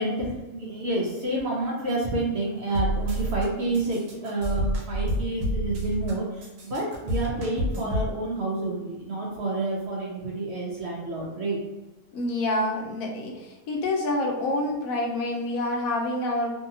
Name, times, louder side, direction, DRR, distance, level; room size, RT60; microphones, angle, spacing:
voice 1, 0.0-11.6, right 2 dB, 60° right, -3 dB, 0.8 m, -29 dB
sound 1, 2.7-3.4 3.7-6.1 6.4-8.1, right 1 dB, 85° right, 1.3 m, -28 dB
voice 2, 12.1-16.5, left 1 dB, 70° left, 1 dB, 1.0 m, -27 dB
2.7 x 2.7 x 2.7 m, 1.2 s
omnidirectional pair, 1.6 m